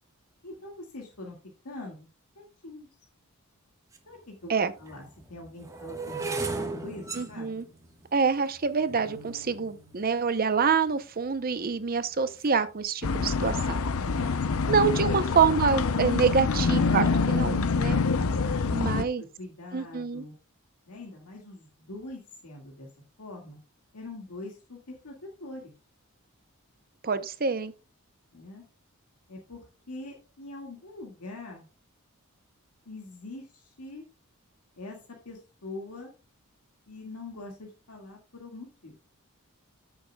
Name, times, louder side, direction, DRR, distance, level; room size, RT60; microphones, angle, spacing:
voice 1, 0.4-1.4 1.6-2.1 2.4-2.9 4.1-6.5 6.8-7.5 14.0-14.7 15.1-15.3 16.4-20.3 20.9-22.9 23.2-23.6 23.9-25.7 28.3-28.6 29.3-31.7 32.9-34.0 34.8-35.0 35.3-36.1 36.9-39.0, left 2 dB, 85° left, 2.0 m, -42 dB
sound 1, 3.9-4.0 4.8-10.9 11.6-12.0 12.2-12.6, right 3 dB, 15° right, 1.3 m, -38 dB
voice 2, 7.2-7.6 8.1-13.8 14.7-18.0 18.7-19.2 19.7-20.3 27.0-27.7, right 5 dB, 40° right, 0.7 m, -26 dB
sound 2, 13.0-19.0, left 4 dB, 70° left, 0.6 m, -26 dB
14.5 x 7.1 x 2.3 m
head